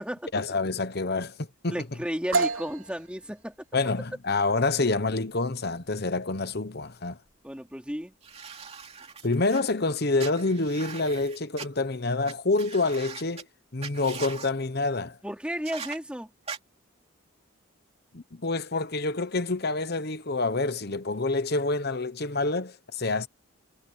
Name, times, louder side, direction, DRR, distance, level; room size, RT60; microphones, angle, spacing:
voice 1, 0.3-1.8 3.7-7.2 9.2-13.5 13.7-15.2 18.1-23.3, left 3 dB, 50° left, 1.1 m, -27 dB
voice 2, 1.7-3.5 7.4-8.1 15.2-16.3, equal, 5° right, 3.6 m, -33 dB
sound 1, 2.3-10.0, right 4 dB, 75° right, 3.2 m, -35 dB
sound 2, 8.2-9.6 10.2-11.7 12.2-12.3 12.6-13.4 13.8-14.5 15.6-16.0 16.5-16.6, right 6 dB, 30° right, 2.8 m, -41 dB
head